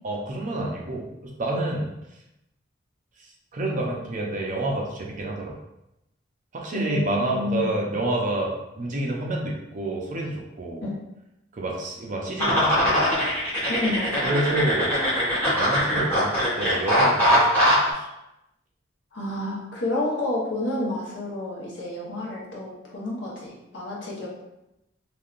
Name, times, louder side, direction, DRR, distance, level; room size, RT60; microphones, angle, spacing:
voice 1, 0.0-1.9 3.2-5.6 6.5-10.9 11.5-13.0 14.2-15.0 15.5-18.1, right 2 dB, 40° right, -1 dB, 0.5 m, -29 dB
voice 2, 6.7-7.8 10.8-11.0 13.7-14.6 19.1-24.3, left 1 dB, 65° left, -4 dB, 0.9 m, -30 dB
sound 1, 12.4-17.9, equal, 10° left, 1.2 m, -22 dB
3.3 x 2.5 x 2.4 m, 0.89 s
head